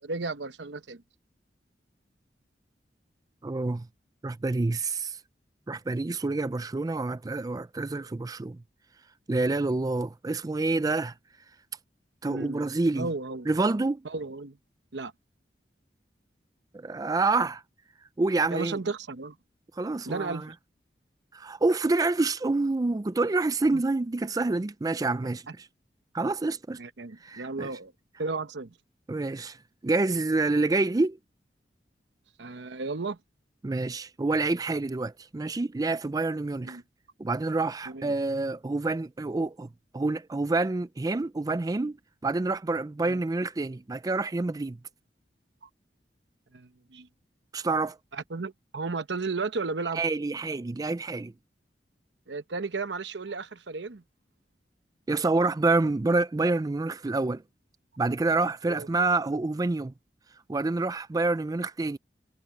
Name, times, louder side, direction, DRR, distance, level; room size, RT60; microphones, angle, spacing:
voice 1, 0.0-1.0 12.2-12.6 13.0-13.5 14.0-14.6 14.9-15.1 18.5-19.4 20.1-20.5 23.7-23.8 26.8-27.9 28.2-28.7 32.4-33.2 36.6-36.8 37.9-38.1 43.0-43.2 46.5-47.1 48.1-50.0 52.3-54.0 58.7-58.9, right 3 dB, 85° right, 0.9 m, -34 dB
voice 2, 3.4-3.9 4.2-5.2 5.7-8.6 9.3-11.1 12.2-13.1 13.5-14.0 16.7-17.6 18.2-18.8 19.8-20.5 21.3-25.7 26.1-26.8 27.2-27.7 29.1-29.6 29.8-31.2 33.6-36.8 37.2-39.7 39.9-42.0 42.2-44.8 47.5-48.0 49.9-51.3 55.1-57.4 58.0-59.9 60.5-62.0, right 3 dB, 20° right, 0.4 m, -27 dB
head